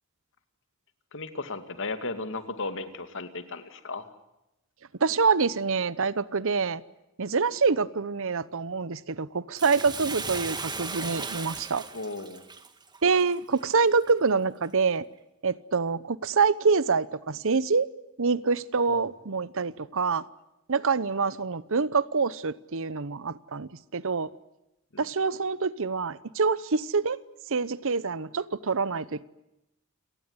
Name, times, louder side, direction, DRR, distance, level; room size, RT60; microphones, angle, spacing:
voice 1, 1.1-4.1 11.9-12.4 18.9-19.0 24.9-25.0, left 3 dB, 60° left, 2.4 m, -35 dB
voice 2, 5.0-6.8 7.2-11.8 13.0-15.0 15.4-17.9 18.2-20.2 20.7-24.3 25.0-27.2 27.5-29.2, right 4 dB, 65° right, 0.9 m, -26 dB
Bathtub (filling or washing), 9.6-14.1 14.6-14.7, right 4 dB, 20° right, 1.9 m, -37 dB
29.0 x 18.5 x 9.7 m
head